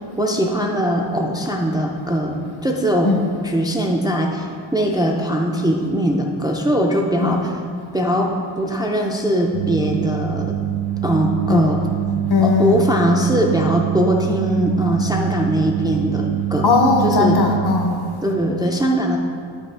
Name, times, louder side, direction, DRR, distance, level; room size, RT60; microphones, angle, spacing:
voice 1, 0.2-3.1 3.4-7.5 7.9-10.5 11.0-11.8 12.4-16.7 17.0-17.4 18.2-19.2, equal, 10° right, 0 dB, 0.4 m, -21 dB
sound 1, 9.5-17.9, right 12 dB, 85° right, 0.6 m, -25 dB
voice 2, 12.3-12.9 16.6-18.1, left 4 dB, 55° left, 3 dB, 0.8 m, -18 dB
8.7 x 5.2 x 3.3 m, 2.3 s
wide cardioid pair, 135°, 46 cm